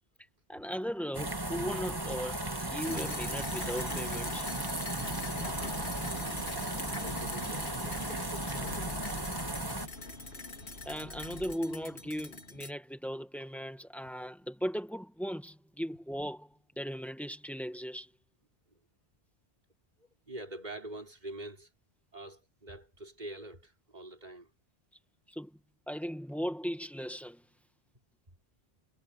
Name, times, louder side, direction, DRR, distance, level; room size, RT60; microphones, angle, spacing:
voice 1, 0.5-4.5 10.8-18.1 25.3-25.6 25.9-27.4, equal, ahead, 1.8 m, -37 dB
sound 1, 1.1-9.9, right 1 dB, 20° right, 1.9 m, -36 dB
sound 2, 2.8-12.7, left 2 dB, 80° left, 3.8 m, -43 dB
sound 3, 5.0-11.6, left 2 dB, 55° left, 3.0 m, -47 dB
voice 2, 6.6-9.0 18.7-18.8 20.3-21.7 22.1-24.5, right 1 dB, 40° right, 4.7 m, -45 dB
omnidirectional pair, 1.1 m